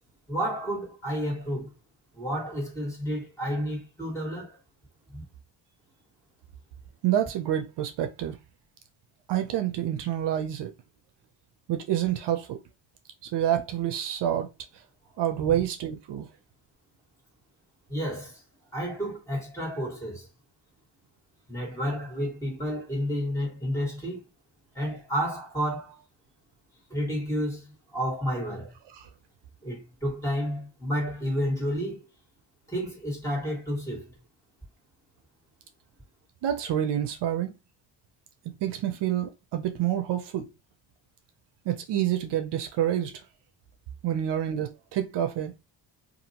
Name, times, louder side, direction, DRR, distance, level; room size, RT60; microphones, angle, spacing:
voice 1, 0.3-1.7 2.1-4.6 5.1-5.3 17.9-18.4 18.7-20.3 21.5-24.2 24.7-26.0 26.9-28.7 29.6-32.0 32.7-34.1, equal, 5° left, 1.8 m, -31 dB
voice 2, 7.0-8.4 9.3-10.7 11.7-12.6 13.2-14.5 15.2-16.3 28.9-29.1 36.4-37.5 38.5-40.5 41.7-43.2 44.0-45.5, right 11 dB, 70° right, 0.6 m, -28 dB
2.8 x 2.5 x 2.8 m
cardioid pair, 105°, 44 cm